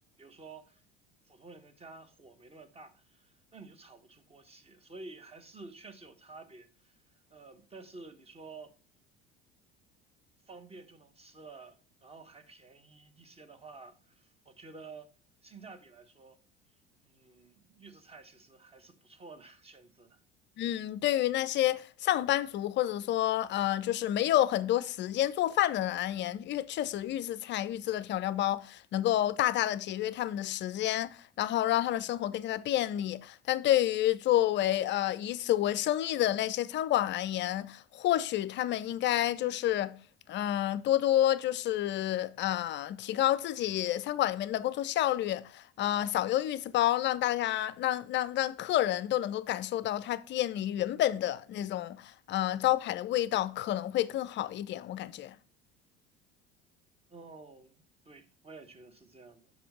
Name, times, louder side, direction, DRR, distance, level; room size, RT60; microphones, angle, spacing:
voice 1, 0.2-0.8 1.3-7.0 7.3-8.7 10.5-15.1 15.4-16.4 17.0-20.2 57.1-59.5, right 3 dB, 20° right, 1.2 m, -51 dB
voice 2, 20.6-40.0 40.3-55.4, left 13 dB, 35° left, 0.5 m, -29 dB
7.5 x 5.4 x 5.1 m
figure-of-eight pair, 65°, 31 cm